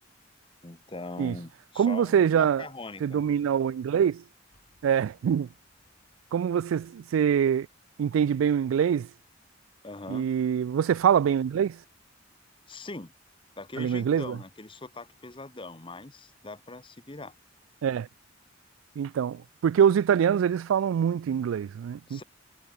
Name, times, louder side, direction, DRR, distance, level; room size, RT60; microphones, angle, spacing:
voice 1, 0.6-3.3 9.8-10.3 12.7-13.1 13.6-17.3 22.1-22.2, left 2 dB, 25° left, 1.1 m, -41 dB
voice 2, 1.8-2.6 3.0-4.2 4.8-5.5 6.3-7.7 8.0-9.1 10.1-11.8 13.8-14.4 17.8-18.1 19.0-22.2, right 8 dB, 80° right, 0.3 m, -24 dB
sound 1, 4.5-10.2, left 1 dB, 45° left, 4.2 m, -71 dB
head